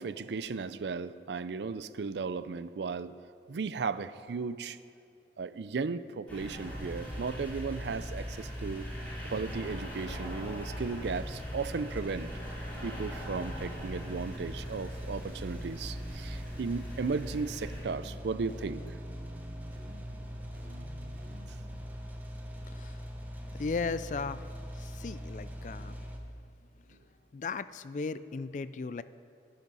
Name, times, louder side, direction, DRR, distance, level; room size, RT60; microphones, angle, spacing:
voice 1, 0.0-3.1 3.5-4.8 5.4-8.9 9.3-12.3 12.8-18.9, right 4 dB, 80° right, 14 dB, 0.4 m, -35 dB
sound 1, 6.3-17.8, equal, 10° left, 3.4 m, -43 dB
sound 2, 6.6-26.2, equal, 10° right, 1.0 m, -42 dB
sound 3, 15.2-21.8, right 1 dB, 50° right, 0.9 m, -51 dB
voice 2, 23.6-24.5 25.0-26.0 27.3-29.0, left 4 dB, 45° left, 15 dB, 0.3 m, -36 dB
12.0 x 10.5 x 5.4 m, 2.5 s
head